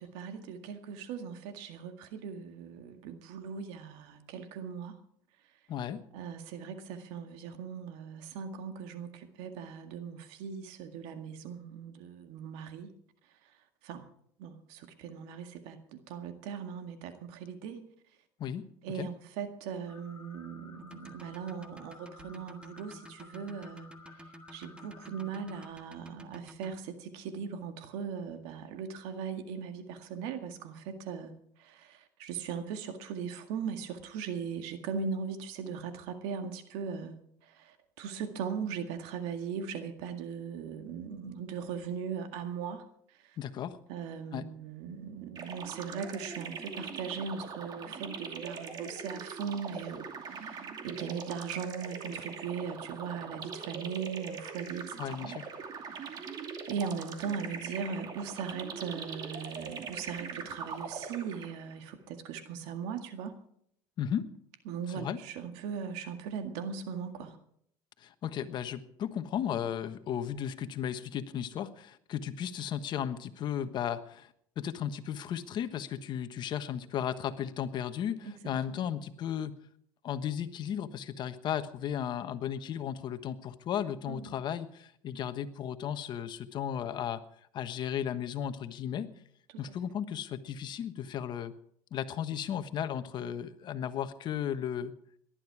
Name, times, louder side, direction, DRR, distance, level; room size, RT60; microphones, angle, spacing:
voice 1, 0.0-5.0 6.1-12.9 13.8-14.1 14.4-17.9 18.8-23.9 24.5-31.3 31.6-37.2 37.4-43.4 43.9-55.4 55.8-56.4 56.7-63.4 64.7-67.4 78.2-78.3 78.7-78.9 84.1-84.3 89.7-89.8, right 6 dB, 80° right, 7 dB, 1.9 m, -39 dB
voice 2, 5.7-6.0 18.4-18.6 18.9-19.1 43.4-43.8 44.3-44.4 55.0-55.5 64.0-64.3 64.9-65.2 68.0-74.3 74.6-79.5 80.0-87.2 87.5-89.1 89.6-91.5 91.9-94.9, left 9 dB, 50° left, 10 dB, 1.3 m, -35 dB
sound 1, 19.9-25.7, left 3 dB, 15° left, 5.3 m, -54 dB
sound 2, 20.8-26.7, equal, 10° right, 1.6 m, -51 dB
sound 3, 45.3-61.7, right 5 dB, 45° right, 2.6 m, -42 dB
18.5 x 12.0 x 4.8 m, 0.67 s
supercardioid pair, 110°, 10 cm